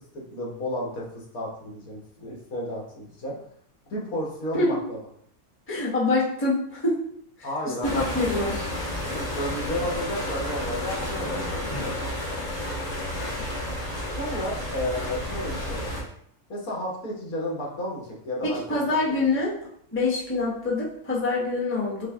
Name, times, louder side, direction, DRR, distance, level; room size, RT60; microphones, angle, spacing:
voice 1, 0.3-3.3 3.9-5.0 7.4-8.1 9.1-11.9 14.2-16.0 16.5-18.8 19.1-19.2, left 1 dB, 75° left, -3 dB, 1.6 m, -32 dB
voice 2, 5.7-7.0 8.1-8.6 18.4-19.5 19.9-22.1, left 2 dB, 10° left, -5 dB, 0.8 m, -25 dB
sound 1, 7.8-16.0, left 1 dB, 50° left, 2.3 m, -31 dB
6.0 x 2.2 x 3.4 m, 0.66 s
omnidirectional pair, 1.6 m